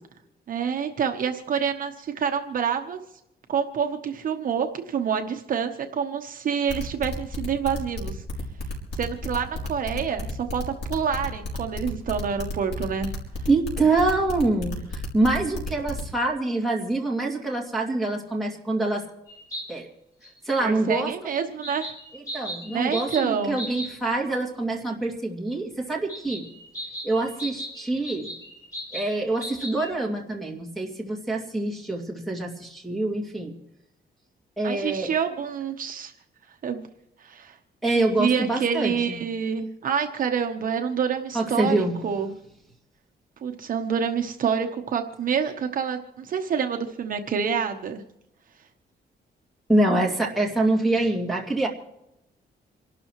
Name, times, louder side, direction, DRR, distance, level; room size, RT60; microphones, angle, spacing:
voice 1, 0.5-3.0 3.5-8.2 8.9-10.6 10.9-13.1 20.6-21.9 22.7-23.6 34.6-36.1 36.6-36.8 37.2-37.5 37.9-42.3 43.4-48.0, right 7 dB, 50° right, 5 dB, 1.0 m, -27 dB
sound 1, 6.7-16.0, left 3 dB, 70° left, 4.5 m, -32 dB
voice 2, 13.5-19.1 19.7-19.9 20.5-21.1 22.3-26.5 27.0-28.3 28.9-33.5 34.6-35.1 37.8-39.2 41.3-41.9 49.7-51.7, right 2 dB, ahead, 0 dB, 2.5 m, -25 dB
sound 2, 19.3-19.7 20.2-20.3 21.6-23.9 26.1-29.9, right 1 dB, 20° left, 7.0 m, -37 dB
27.5 x 12.5 x 3.1 m, 0.85 s
wide cardioid pair, 175°, 18 cm